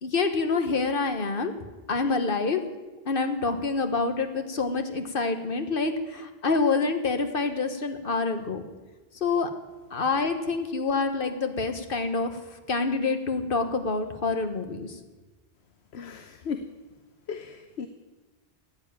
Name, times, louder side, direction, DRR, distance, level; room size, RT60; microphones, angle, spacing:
voice 1, 0.0-1.5 1.9-2.6 3.0-8.6 9.2-9.5 9.9-12.4 12.7-15.0, left 4 dB, 60° left, 7 dB, 1.5 m, -27 dB
voice 2, 15.9-16.7 17.3-17.9, left 6 dB, 80° left, 9 dB, 1.1 m, -36 dB
15.5 x 9.4 x 8.9 m, 1.2 s
omnidirectional pair, 1.1 m